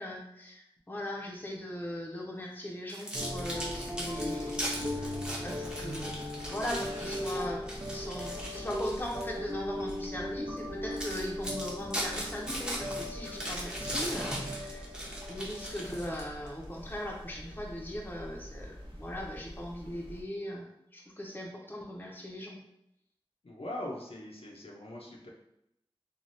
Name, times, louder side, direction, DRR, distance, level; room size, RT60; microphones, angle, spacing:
voice 1, 0.0-4.6 4.9-5.2 5.4-6.1 6.5-14.9 15.3-22.6, left 1 dB, 20° left, -2 dB, 0.6 m, -39 dB
sound 1, 2.9-9.4 9.9-10.1 10.6-10.7 11.0-16.5, right 1 dB, 10° right, 0.8 m, -38 dB
sound 2, 3.1-20.2, left 1 dB, 65° right, 0.7 m, -39 dB
voice 2, 23.4-25.3, left 1 dB, 80° left, -2 dB, 0.6 m, -41 dB
3.3 x 2.3 x 2.6 m, 0.80 s
wide cardioid pair, 45°, 10 cm